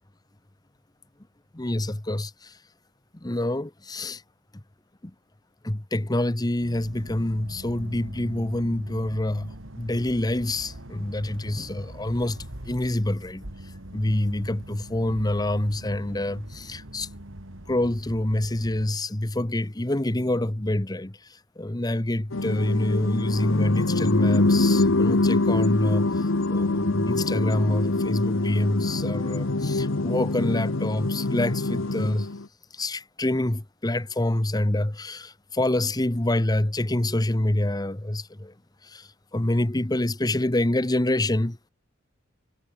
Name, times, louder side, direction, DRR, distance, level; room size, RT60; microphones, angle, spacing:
voice 1, 1.5-2.5 3.2-4.2 5.6-13.4 13.9-17.1 17.7-21.2 21.6-26.1 26.5-32.3 32.8-38.5 38.9-39.1 39.3-41.6, left 1 dB, 20° left, 1.0 m, -26 dB
sound 1, 6.6-18.9, right 1 dB, 80° right, 3.8 m, -42 dB
sound 2, 22.3-32.4, left 2 dB, 85° left, 1.2 m, -24 dB
head